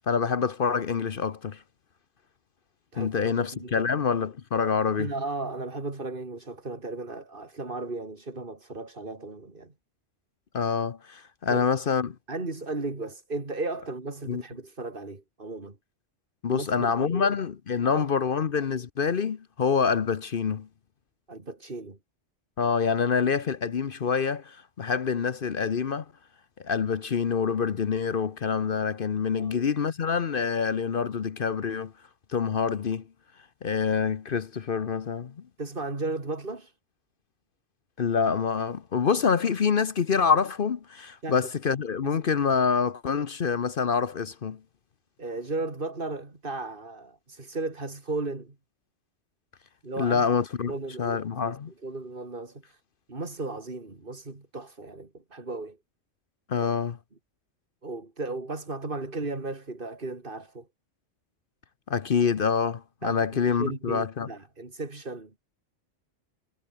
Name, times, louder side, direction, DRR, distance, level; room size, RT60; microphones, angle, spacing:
voice 1, 0.0-1.6 3.0-5.1 10.5-12.2 14.3-14.4 16.4-20.7 22.6-26.0 26.6-31.9 32.3-33.1 33.6-35.3 38.0-44.6 50.0-50.7 51.0-51.7 56.5-57.0 61.9-64.3, left 6 dB, 50° left, 1.0 m, -26 dB
voice 2, 2.9-3.9 5.0-9.7 11.5-11.7 12.3-15.8 16.5-17.3 17.9-18.0 21.3-22.0 29.3-29.6 35.6-36.7 41.2-41.4 42.0-42.2 45.2-48.5 49.8-50.3 50.7-52.8 53.1-55.8 56.6-56.7 57.8-60.7 63.0-65.3, right 3 dB, 45° right, 3.2 m, -35 dB
omnidirectional pair, 1.2 m